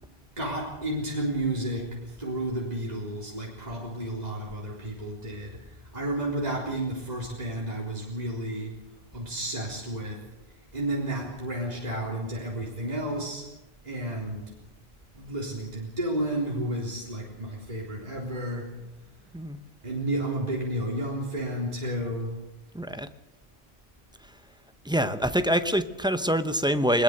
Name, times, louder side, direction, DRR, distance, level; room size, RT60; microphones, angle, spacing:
voice 1, 0.4-5.6 5.9-8.8 9.1-10.2 10.7-13.5 13.8-14.5 15.1-18.7 19.8-22.4, right 1 dB, 40° right, -3 dB, 4.0 m, -31 dB
voice 2, 22.7-23.1 24.8-27.0, equal, 5° right, 10 dB, 0.8 m, -25 dB
21.0 x 20.5 x 6.7 m, 0.92 s
omnidirectional pair, 1.0 m